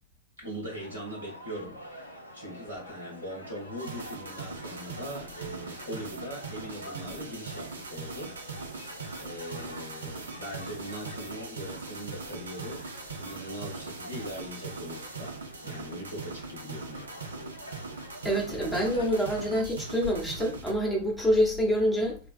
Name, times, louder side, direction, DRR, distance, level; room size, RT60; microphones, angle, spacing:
voice 1, 0.4-8.4 8.7-17.1, equal, 85° right, 1.4 m, -41 dB
sound 1, 0.7-19.6, left 1 dB, 80° left, 0.5 m, -46 dB
sound 2, 3.8-20.7, right 4 dB, 70° right, 0.5 m, -41 dB
voice 2, 18.2-22.2, equal, 5° left, 1.0 m, -26 dB
3.4 x 2.2 x 2.6 m
figure-of-eight pair, 90°, 0 cm